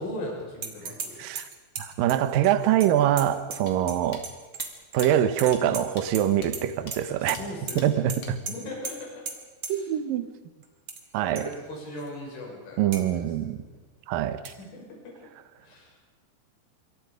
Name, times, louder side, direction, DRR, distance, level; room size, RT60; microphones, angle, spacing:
voice 1, 0.0-1.2 7.1-8.1 8.5-9.2 9.7-9.9 11.2-13.0 14.6-15.1 15.6-15.9, left 1 dB, 90° left, -2 dB, 8.7 m, -38 dB
sound 1, 0.6-1.1 1.4-4.0 4.2-5.1 5.4-6.2 6.5-7.0 7.3-7.4 7.7-7.8 8.1-8.2 8.5-8.6 8.8-8.9 9.3-9.4 9.6-9.7 10.6-11.0 11.4-11.5 12.0-12.1 12.9-13.0 14.4-14.5, right 5 dB, 40° right, 2.5 m, -35 dB
voice 2, 1.2-1.5 1.8-4.2 4.9-7.4 7.8-8.4 9.7-10.3 11.1-11.5 12.8-13.6 14.1-14.5, right 11 dB, 70° right, 11 dB, 2.3 m, -24 dB
sound 2, 3.7-3.8 4.1-4.2 4.6-4.7 5.0-5.1 5.5-5.6 6.0-6.1 6.4-6.5 6.9-7.0 7.3-7.5 7.8-7.9 8.2-8.3, left 4 dB, 35° left, 3.1 m, -42 dB
26.5 x 24.5 x 5.2 m, 1.3 s
omnidirectional pair, 5.3 m